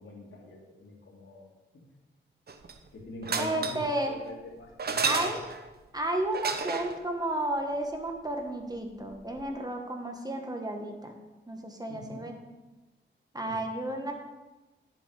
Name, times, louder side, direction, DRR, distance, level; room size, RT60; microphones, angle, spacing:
voice 1, 0.0-1.8 2.9-5.3 11.9-12.3 13.4-13.6, left 2 dB, 80° left, -1 dB, 2.2 m, -44 dB
sound 1, 2.5-2.9 3.2-3.9 4.8-5.7 6.3-7.0 9.1-9.2 9.4-9.5, right 5 dB, 55° right, 0.8 m, -31 dB
voice 2, 3.3-4.2 5.0-5.4 5.9-11.1 11.5-12.4 13.3-14.1, right 1 dB, 20° right, 3 dB, 1.3 m, -32 dB
10.0 x 7.4 x 4.9 m, 1.1 s
wide cardioid pair, 110°, 20 cm